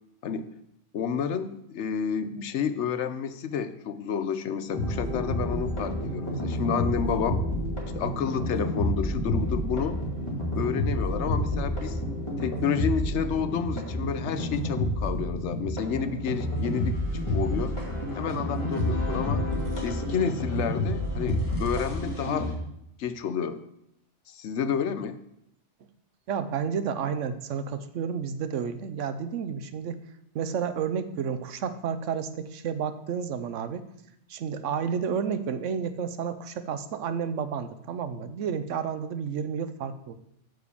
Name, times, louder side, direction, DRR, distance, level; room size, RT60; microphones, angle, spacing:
voice 1, 0.9-7.4 7.9-10.0 10.6-12.0 12.4-16.9 17.3-17.7 18.1-19.4 19.8-22.5 23.0-23.6 24.3-25.2, left 7 dB, 75° left, 11 dB, 1.0 m, -30 dB
sound 1, 4.7-22.5, left 1 dB, 25° left, 2.2 m, -29 dB
voice 2, 26.3-30.0 30.3-33.8 34.3-40.1, right 7 dB, 90° right, 11 dB, 1.1 m, -31 dB
8.9 x 4.9 x 6.9 m, 0.77 s
omnidirectional pair, 1.2 m